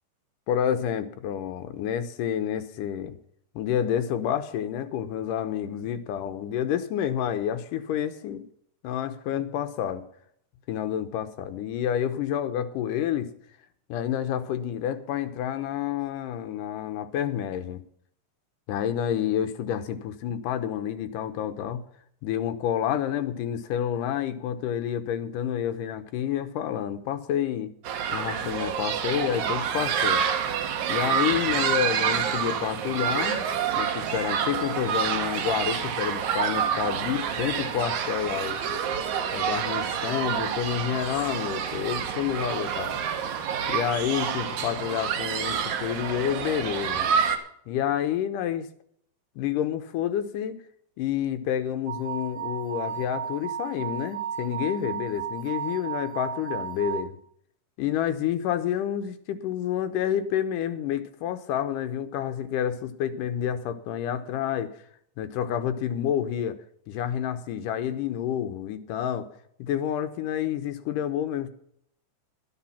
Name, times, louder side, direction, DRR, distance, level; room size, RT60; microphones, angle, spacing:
voice 1, 0.5-3.2 3.6-8.4 8.8-10.1 10.7-13.3 13.9-17.8 18.7-21.8 22.2-27.7 28.1-30.2 30.9-33.5 33.8-38.6 39.3-43.0 43.7-47.1 47.7-48.7 49.4-50.6 51.0-57.2 57.8-64.7 65.2-66.6 66.9-69.3 69.6-71.5, left 10 dB, 80° left, 9 dB, 2.4 m, -29 dB
sound 1, 27.9-47.4, right 8 dB, 70° right, 2.4 m, -28 dB
sound 2, 51.9-57.0, right 9 dB, 50° right, 2.6 m, -34 dB
12.5 x 10.5 x 5.8 m, 0.68 s
omnidirectional pair, 3.8 m